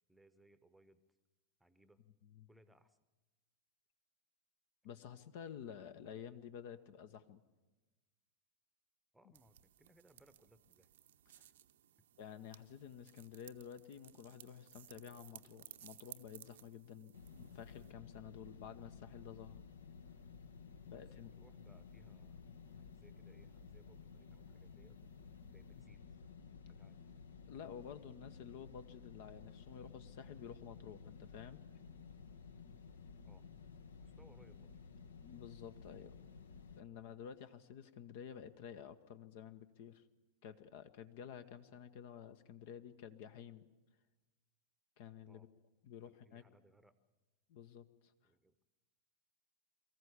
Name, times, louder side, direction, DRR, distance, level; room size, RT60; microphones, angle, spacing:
voice 1, 0.1-1.0 1.6-2.0 2.5-3.0 9.1-10.9 11.4-11.5 21.2-25.0 25.5-26.0 26.5-27.0 33.2-33.4 34.0-34.7 45.3-45.5 46.0-47.0 48.2-48.6, right 1 dB, 5° right, 13 dB, 0.9 m, -67 dB
voice 2, 4.8-7.4 11.3-11.5 12.2-19.6 20.9-21.3 27.5-31.6 35.2-36.2 36.8-40.0 40.4-43.6 45.0-45.5 45.8-46.4 47.5-48.1, left 8 dB, 50° left, 12 dB, 0.9 m, -51 dB
sound 1, 9.3-17.9, right 11 dB, 60° right, 0.7 m, -59 dB
sound 2, 17.1-36.8, left 5 dB, 70° left, 1.0 m, -55 dB
23.5 x 14.5 x 8.3 m, 1.2 s
figure-of-eight pair, 90°, 0 cm